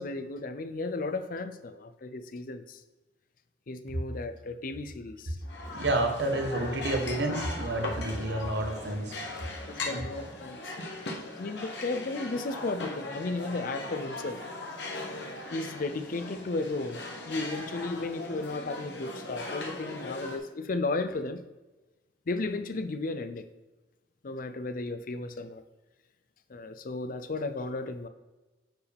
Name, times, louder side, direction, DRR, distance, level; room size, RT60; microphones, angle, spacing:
voice 1, 0.0-2.8 3.7-5.4 9.7-10.7 11.4-14.4 15.5-21.4 22.3-23.5 24.2-25.6 26.5-28.1, left 3 dB, 50° left, 10 dB, 0.5 m, -34 dB
sound 1, 5.4-20.4, left 2 dB, 75° left, 1.3 m, -39 dB
voice 2, 5.7-9.2 9.8-10.1, right 1 dB, 70° right, 4 dB, 1.2 m, -30 dB
9.3 x 4.7 x 3.4 m, 1.1 s
head